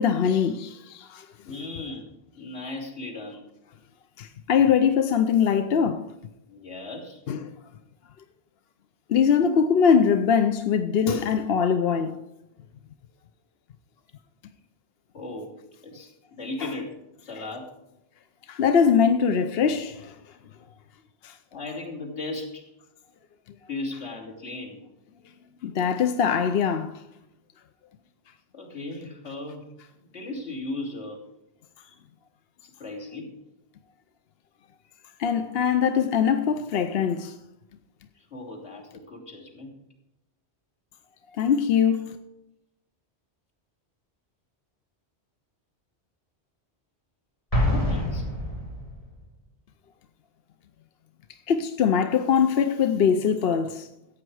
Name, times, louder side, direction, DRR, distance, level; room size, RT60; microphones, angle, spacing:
voice 1, 0.0-1.3 4.2-6.1 7.3-7.5 9.1-12.2 16.6-16.7 18.5-20.2 21.2-21.3 25.6-27.0 35.2-37.3 41.4-42.2 51.5-53.9, left 7 dB, 65° left, 0.9 m, -22 dB
voice 2, 1.4-3.4 6.5-7.2 9.5-9.6 15.1-15.5 15.8-17.7 21.5-22.7 23.7-24.8 28.5-29.7 30.1-31.2 31.8-31.9 32.6-33.3 38.1-39.7 47.7-48.2, left 2 dB, 85° left, 3.3 m, -37 dB
Explosion, 47.5-49.1, left 1 dB, 30° left, 4.1 m, -26 dB
14.5 x 8.9 x 4.7 m
omnidirectional pair, 1.1 m